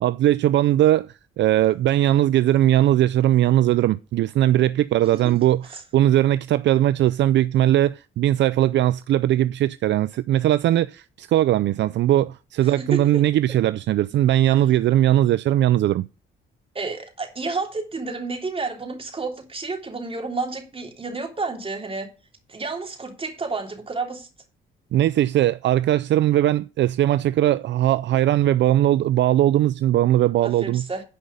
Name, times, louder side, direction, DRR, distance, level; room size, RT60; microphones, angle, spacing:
voice 1, 0.0-16.1 24.9-30.8, right 13 dB, 65° right, 0.4 m, -19 dB
voice 2, 12.8-13.2 16.8-22.1 22.5-24.3 30.4-31.0, right 3 dB, 30° right, 3.3 m, -30 dB
10.0 x 5.4 x 8.1 m
cardioid pair, 90°, 20 cm